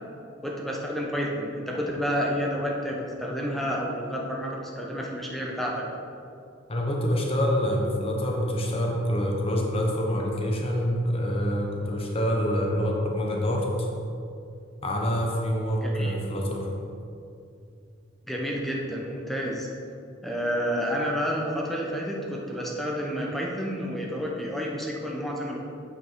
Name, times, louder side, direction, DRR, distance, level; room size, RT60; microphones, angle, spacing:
voice 1, 0.4-5.9 15.8-16.1 18.3-19.7 20.2-25.6, equal, ahead, -2 dB, 0.9 m, -30 dB
voice 2, 6.7-13.9 14.8-16.7, equal, 30° left, -1 dB, 0.9 m, -26 dB
8.4 x 5.3 x 4.6 m, 2.6 s
head